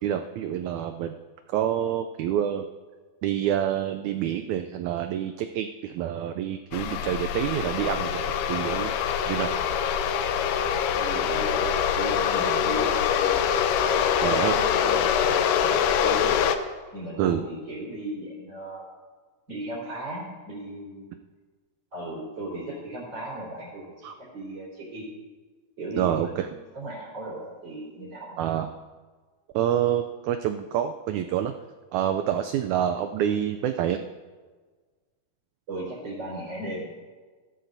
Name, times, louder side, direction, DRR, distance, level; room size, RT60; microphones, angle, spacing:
voice 1, 0.0-1.2 1.5-2.7 3.2-9.0 9.3-9.5 14.2-14.6 17.2-17.4 24.0-24.1 26.0-26.5 28.4-28.7 29.5-31.5 31.9-34.0, right 10 dB, 85° right, 8 dB, 1.7 m, -27 dB
sound 1, 6.7-16.6, left 8 dB, 80° left, 2.2 m, -24 dB
voice 2, 10.9-13.4 13.9-16.4 16.9-18.9 19.5-21.1 21.9-25.0 25.8-28.4 35.7-37.0, right 1 dB, 35° right, -7 dB, 4.3 m, -36 dB
15.5 x 13.5 x 2.6 m, 1.4 s
omnidirectional pair, 3.9 m